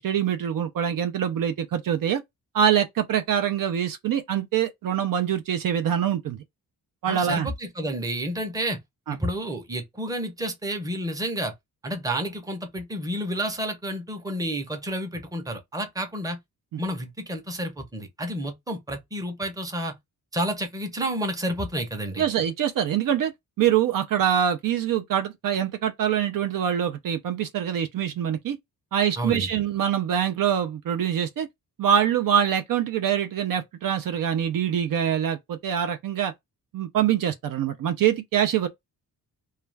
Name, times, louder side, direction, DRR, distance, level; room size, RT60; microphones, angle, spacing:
voice 1, 0.0-2.2 2.5-6.4 7.0-7.5 9.1-9.2 16.7-16.8 22.2-23.3 23.6-28.6 28.9-31.5 31.8-36.3 36.7-38.7, right 9 dB, 65° right, 0.5 m, -24 dB
voice 2, 7.1-8.8 9.1-11.5 11.8-16.4 16.8-19.9 20.3-22.2 29.2-29.5, right 1 dB, 10° right, 0.6 m, -30 dB
2.4 x 2.2 x 3.2 m
wide cardioid pair, 140°, 37 cm